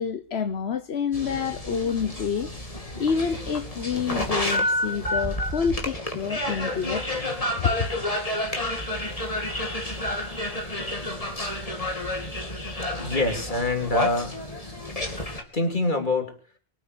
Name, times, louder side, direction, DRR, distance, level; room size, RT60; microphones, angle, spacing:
voice 1, 0.0-2.5 3.0-7.0 7.6-7.7, left 6 dB, 85° left, 1.3 m, -28 dB
sound 1, 1.1-15.4, left 1 dB, 35° left, 2.8 m, -30 dB
voice 2, 13.0-14.4 15.5-16.4, left 2 dB, 50° left, 3.5 m, -25 dB
24.0 x 8.5 x 6.8 m
omnidirectional pair, 1.0 m